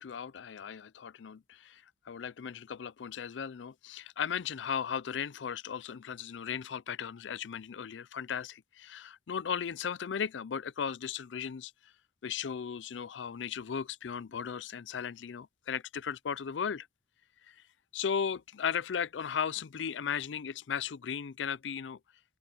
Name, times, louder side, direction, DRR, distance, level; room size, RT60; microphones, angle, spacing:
voice 1, 0.0-11.7 12.2-16.9 17.5-17.6 17.9-22.0, left 7 dB, 90° left, 0.5 m, -36 dB
open air
head